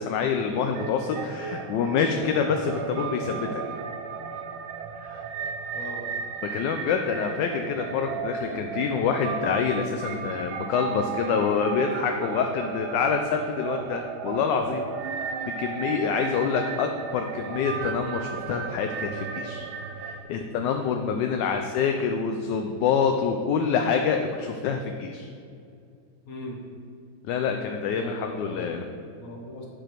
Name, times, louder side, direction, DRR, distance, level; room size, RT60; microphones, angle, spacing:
voice 1, 0.0-3.5 5.0-5.2 6.5-15.2 15.6-19.7 20.0-25.3 27.3-28.9, left 6 dB, 75° left, 5 dB, 1.1 m, -26 dB
sound 1, 0.7-20.2, right 6 dB, 85° right, 1.4 m, -34 dB
voice 2, 5.7-6.1 20.6-20.8 26.3-26.6 27.9-29.7, left 2 dB, 50° left, -1 dB, 1.3 m, -39 dB
8.8 x 4.9 x 4.5 m, 2.4 s
omnidirectional pair, 2.2 m